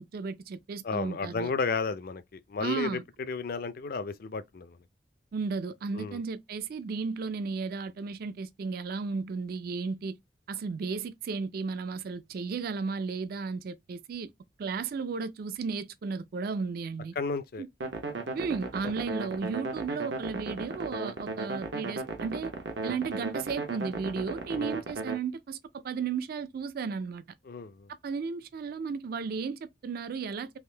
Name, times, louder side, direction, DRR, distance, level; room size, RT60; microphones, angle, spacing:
voice 1, 0.0-1.5 2.6-3.0 5.3-10.2 10.5-14.3 14.6-17.2 17.6-17.7 18.3-22.5 22.8-27.2 28.0-30.6, right 5 dB, 55° right, 0.3 m, -34 dB
voice 2, 0.8-3.0 3.3-4.8 5.9-6.2 17.2-17.6 18.8-18.9 24.5-24.7 27.5-27.9, left 4 dB, 55° left, 0.4 m, -33 dB
sound 1, 17.8-25.2, right 3 dB, 85° right, 0.9 m, -35 dB
3.6 x 2.5 x 3.2 m
head